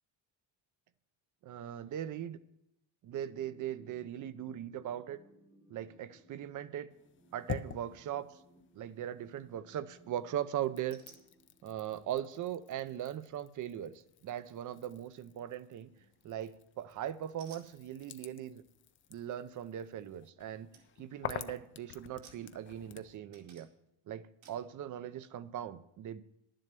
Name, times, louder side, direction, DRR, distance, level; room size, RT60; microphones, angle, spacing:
voice 1, 1.4-2.4 3.0-5.2 5.7-6.9 7.3-8.4 8.7-11.0 11.6-15.9 16.2-18.6 19.1-20.7 21.0-23.7 24.1-26.2, right 11 dB, 40° right, 16 dB, 0.5 m, -39 dB
sound 1, 3.1-12.1, right 1 dB, 10° right, 1.0 m, -63 dB
sound 2, 6.9-9.6 9.9-23.2, left 9 dB, 30° left, 0.3 m, -49 dB
sound 3, 10.9-11.3 16.0-16.4 17.4-17.7 20.2-20.3 20.7-20.9 21.2-21.6 22.2-23.0 23.3-23.9 24.4-24.7, right 6 dB, 70° right, 2.4 m, -59 dB
11.0 x 7.6 x 6.7 m, 0.82 s
cardioid pair, 155°, 48 cm